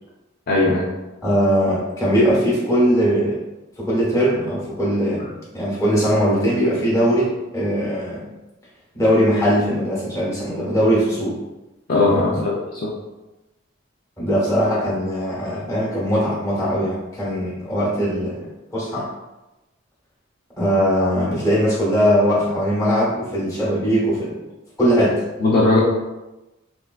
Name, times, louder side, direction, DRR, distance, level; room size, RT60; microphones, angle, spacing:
voice 1, 0.5-0.9 11.9-12.9 25.4-25.8, left 2 dB, 50° left, -5 dB, 0.5 m, -18 dB
voice 2, 1.2-3.4 3.8-8.3 8.9-11.4 14.2-18.5 18.7-19.1 20.6-24.3 24.8-25.2, equal, 15° left, -7 dB, 1.0 m, -20 dB
3.5 x 2.3 x 2.3 m, 1.0 s
head